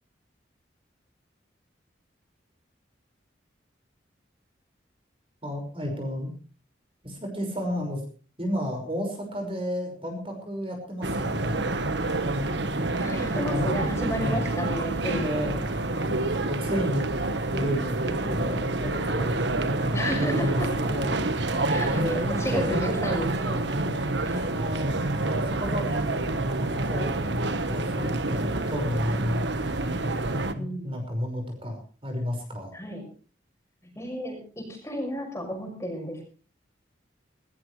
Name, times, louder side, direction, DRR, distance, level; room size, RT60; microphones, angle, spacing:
voice 1, 5.4-6.3 7.0-8.0 8.4-11.8 12.2-12.5 13.3-13.7 14.1-14.4 15.0-17.1 17.5-21.2 21.7-22.8 23.3-24.0 24.3-25.0 25.3-29.5 29.7-29.8 30.3-32.7, equal, 30° right, 3 dB, 5.7 m, -32 dB
sound 1, 11.0-30.5, right 2 dB, 70° right, 1.4 m, -28 dB
voice 2, 13.0-15.5 19.9-20.7 21.7-23.3 24.2-24.4 30.5-30.9 32.7-33.0 34.0-36.2, equal, 15° left, 2 dB, 5.9 m, -32 dB
19.5 x 18.0 x 3.3 m, 0.39 s
head